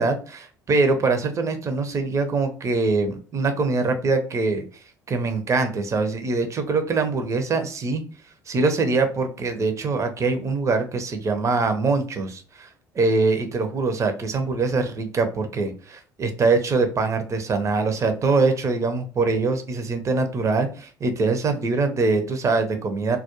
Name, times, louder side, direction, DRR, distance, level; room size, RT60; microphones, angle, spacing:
voice 1, 0.0-4.6 5.1-8.0 8.5-12.7 12.9-23.2, right 3 dB, 35° right, 7 dB, 0.6 m, -23 dB
2.3 x 2.2 x 2.9 m, 0.39 s
hypercardioid pair, 60°, 9 cm